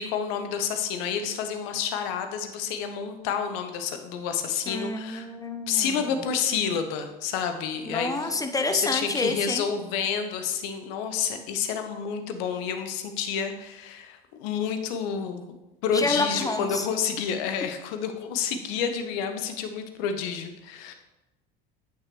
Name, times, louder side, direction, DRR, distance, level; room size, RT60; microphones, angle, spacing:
voice 1, 0.0-5.3 5.7-8.4 8.7-15.6 15.8-20.9, left 7 dB, 65° left, 7 dB, 1.0 m, -29 dB
voice 2, 4.7-6.2 7.9-9.7 15.9-16.9, left 2 dB, 10° left, 6 dB, 0.9 m, -28 dB
8.7 x 6.1 x 3.1 m, 1.0 s
hypercardioid pair, 70°, 32 cm